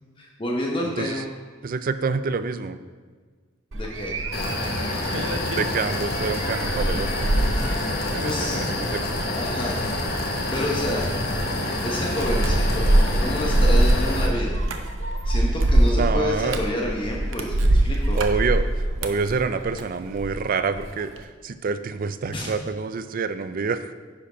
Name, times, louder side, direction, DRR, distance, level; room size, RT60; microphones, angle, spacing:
voice 1, 0.2-1.3 3.7-4.2 8.2-8.7 9.3-9.8 10.5-11.1 11.8-14.8 15.2-18.2 22.3-22.5, left 1 dB, 25° left, -2 dB, 0.9 m, -29 dB
voice 2, 1.6-2.8 5.5-7.3 8.1-9.2 15.9-16.6 18.2-23.9, right 4 dB, 45° right, 12 dB, 0.4 m, -27 dB
sound 1, 3.7-20.4 20.8-21.2, right 1 dB, 75° right, 0.7 m, -24 dB
sound 2, 4.3-14.3, left 2 dB, 50° left, 1.2 m, -27 dB
10.5 x 4.3 x 4.9 m, 1.5 s
head